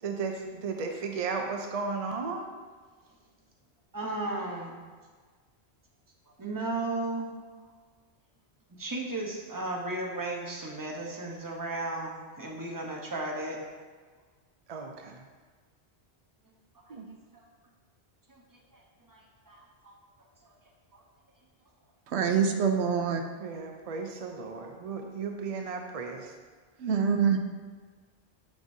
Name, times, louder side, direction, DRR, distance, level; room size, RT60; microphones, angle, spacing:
voice 1, 0.0-2.5 14.7-15.2 16.9-17.1 23.4-26.3, right 4 dB, 50° right, 0.4 m, -35 dB
voice 2, 3.9-4.8 6.4-7.3 8.7-13.6 16.9-17.0 17.3-17.4 18.3-18.4 18.7-18.8 19.1-19.9 20.4-20.5 20.9-21.0, right 2 dB, 20° right, 0.9 m, -35 dB
voice 3, 22.1-23.2 26.8-27.4, right 6 dB, 80° right, 0.9 m, -25 dB
9.3 x 5.1 x 2.7 m
omnidirectional pair, 1.1 m